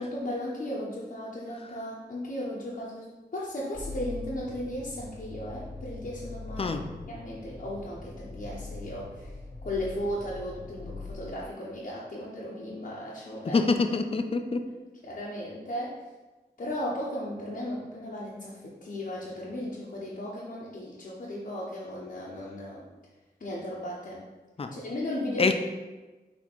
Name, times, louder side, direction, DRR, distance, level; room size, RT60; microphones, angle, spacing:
voice 1, 0.0-6.8 7.1-9.3 9.6-13.7 15.0-16.0 16.6-22.8 23.4-24.2 24.7-25.5, left 1 dB, 55° left, -6 dB, 0.8 m, -36 dB
sound 1, 3.7-11.1, left 3 dB, 5° right, 0.7 m, -42 dB
voice 2, 13.5-14.6 24.6-24.7 25.4-25.5, left 4 dB, 35° left, 7 dB, 0.4 m, -25 dB
4.3 x 2.8 x 4.3 m, 1.2 s
cardioid pair, 55°, 17 cm